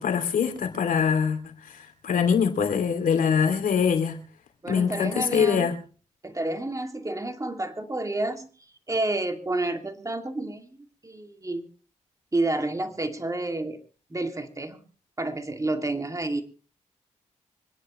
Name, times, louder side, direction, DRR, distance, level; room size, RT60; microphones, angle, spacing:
voice 1, 0.0-1.4 2.0-4.2 4.7-5.7, left 6 dB, 80° left, 2.6 m, -23 dB
voice 2, 4.6-5.7 6.2-8.5 8.9-10.8 11.0-11.6 12.3-13.8 14.1-14.8 15.2-16.4, right 2 dB, 25° right, 2.5 m, -29 dB
25.5 x 10.0 x 3.1 m
cardioid pair, 55°, 14 cm